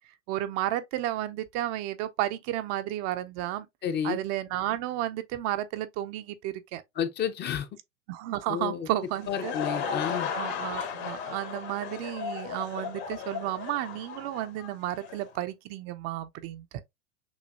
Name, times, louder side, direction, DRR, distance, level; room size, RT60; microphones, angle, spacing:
voice 1, 0.3-3.7 4.0-6.8 8.1-9.5 10.3-16.7, right 14 dB, 45° right, 0.6 m, -32 dB
voice 2, 3.8-4.2 7.0-7.7 8.5-8.9 9.3-10.3, left 8 dB, 30° left, 0.7 m, -30 dB
Laughter / Crowd, 9.0-15.3, left 7 dB, 60° left, 1.5 m, -35 dB
6.2 x 2.6 x 2.5 m
hypercardioid pair, 100°, 36 cm